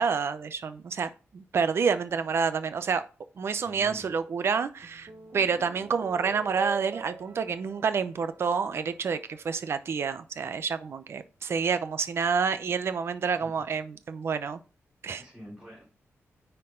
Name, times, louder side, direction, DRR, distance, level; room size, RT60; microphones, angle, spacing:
voice 1, 0.0-3.0 3.4-14.6 15.0-15.2, right 6 dB, 55° right, 0.7 m, -28 dB
voice 2, 3.6-4.1 13.4-13.7 15.2-15.8, equal, 20° right, 3.9 m, -46 dB
sound 1, 4.8-9.4, right 4 dB, 40° right, 1.0 m, -43 dB
9.5 x 4.5 x 3.8 m
wide cardioid pair, 170°, 5 cm